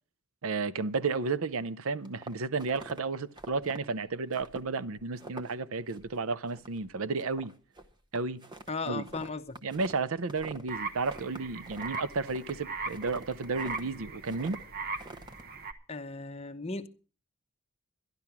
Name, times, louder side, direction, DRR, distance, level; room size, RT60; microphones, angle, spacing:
voice 1, 0.4-7.5 8.1-8.4 8.9-9.1 9.6-14.6, right 4 dB, 75° right, 0.6 m, -32 dB
sound 1, 2.0-3.0 3.3-3.8 4.3-4.7 5.0-5.6 5.9-6.2 6.5-6.9 7.2-10.7 11.0-13.9 14.3-14.6 15.0-15.4, right 2 dB, 20° right, 0.9 m, -46 dB
voice 2, 8.7-9.6 15.9-16.9, left 3 dB, 30° left, 0.8 m, -36 dB
sound 2, 10.7-15.7, right 4 dB, 45° right, 1.0 m, -39 dB
12.5 x 11.5 x 5.9 m
head